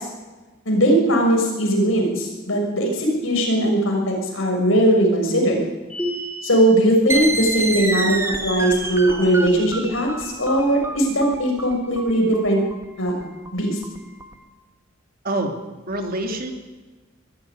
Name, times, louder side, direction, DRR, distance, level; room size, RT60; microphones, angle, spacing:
voice 1, 0.6-5.6 6.4-8.2 8.4-12.6 13.0-13.1 13.5-13.8, right 1 dB, 75° left, 1 dB, 6.3 m, -19 dB
sound 1, 5.9-6.8, equal, 5° left, 3.8 m, -29 dB
sound 2, 7.1-14.3, right 2 dB, 15° right, 1.7 m, -28 dB
voice 2, 8.8-9.3 15.2-15.5 15.9-16.5, right 2 dB, 45° right, 4 dB, 2.7 m, -28 dB
21.5 x 13.0 x 9.7 m, 1.2 s
head